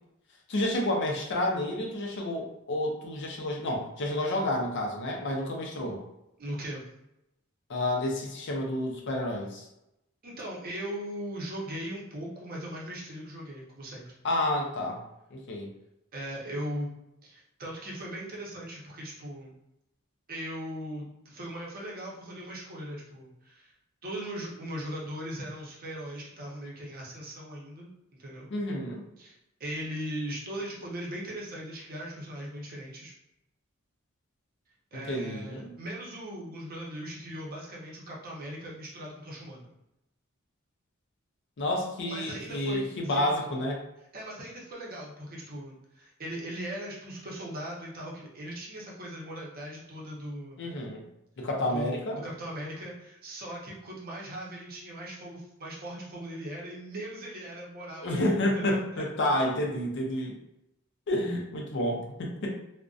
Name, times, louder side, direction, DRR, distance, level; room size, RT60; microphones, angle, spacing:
voice 1, 0.5-6.0 7.7-9.7 14.2-15.0 15.3-15.7 28.5-29.0 35.1-35.7 41.6-43.8 50.6-51.0 51.4-52.2 58.0-60.4 61.1-62.5, left 1 dB, 60° left, 1 dB, 0.5 m, -30 dB
voice 2, 6.4-6.8 10.2-14.0 16.1-16.9 17.2-19.5 20.3-23.7 24.0-27.9 28.2-28.5 29.2-33.1 34.9-39.7 42.1-43.3 44.1-50.6 51.7-59.0, right 1 dB, 45° right, -3 dB, 0.7 m, -39 dB
2.5 x 2.1 x 2.3 m, 0.87 s
head